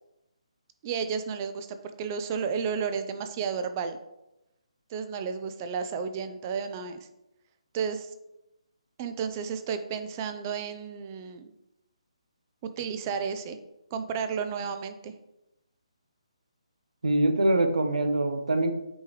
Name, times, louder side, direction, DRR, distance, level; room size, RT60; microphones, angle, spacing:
voice 1, 0.8-4.0 4.9-7.1 7.7-8.1 9.0-11.5 12.6-13.6 13.9-15.1, right 6 dB, 25° right, 9 dB, 0.5 m, -32 dB
voice 2, 17.0-18.7, right 1 dB, 70° right, 7 dB, 1.0 m, -24 dB
7.9 x 4.5 x 3.2 m, 0.90 s
figure-of-eight pair, 145°, 4 cm